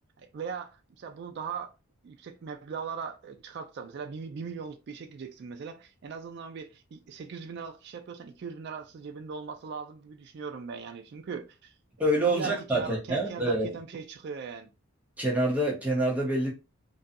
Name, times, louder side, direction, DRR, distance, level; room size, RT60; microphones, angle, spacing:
voice 1, 0.2-1.7 2.0-11.7 12.3-14.7, right 6 dB, 50° right, 0.3 m, -39 dB
voice 2, 12.0-13.7 15.2-16.5, right 1 dB, 5° right, 0.8 m, -26 dB
2.6 x 2.2 x 2.5 m
head